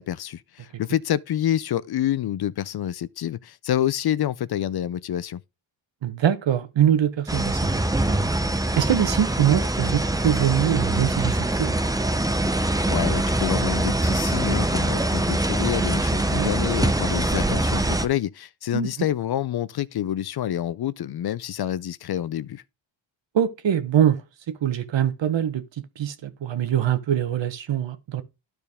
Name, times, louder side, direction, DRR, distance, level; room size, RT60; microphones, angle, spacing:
voice 1, 0.0-5.4 12.9-22.6, left 11 dB, 55° left, 0.5 m, -27 dB
voice 2, 6.0-7.6 8.1-8.2 8.8-11.8 16.2-16.5 18.7-18.9 23.3-24.2 24.5-25.6 26.0-28.2, right 10 dB, 65° right, 1.2 m, -23 dB
sound 1, 7.3-18.1, right 1 dB, 10° right, 0.7 m, -23 dB
12.0 x 4.5 x 3.5 m
cardioid pair, 105°, 47 cm